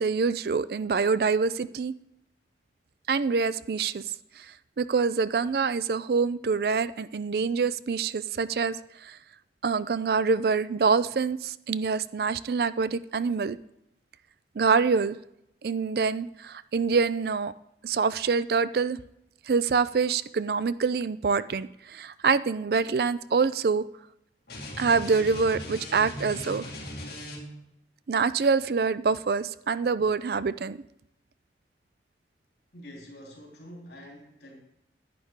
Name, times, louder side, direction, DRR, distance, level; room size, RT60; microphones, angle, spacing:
voice 1, 0.0-1.9 3.1-4.0 4.4-4.5 4.8-8.8 9.0-9.2 9.6-13.6 14.6-15.2 15.6-17.5 17.8-19.0 19.5-23.8 24.8-26.7 28.1-30.8, right 5 dB, 60° right, 16 dB, 0.4 m, -25 dB
sound 1, 24.5-27.7, left 1 dB, 60° left, 2.2 m, -39 dB
voice 2, 32.7-34.6, equal, 75° left, -1 dB, 3.4 m, -46 dB
11.0 x 9.4 x 3.7 m, 0.82 s
head